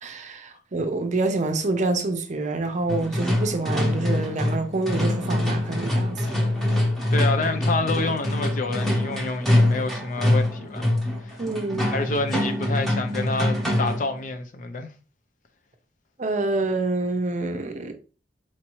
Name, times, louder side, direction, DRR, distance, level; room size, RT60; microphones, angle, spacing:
voice 1, 0.0-6.3 11.4-11.9 16.2-17.9, right 2 dB, 40° right, 0.6 m, -27 dB
Metallic Banging, 2.9-14.1, left 1 dB, ahead, 0.9 m, -24 dB
voice 2, 7.1-10.9 11.2-11.4 11.8-14.9, left 3 dB, 45° left, 0.5 m, -28 dB
4.4 x 2.7 x 3.0 m
head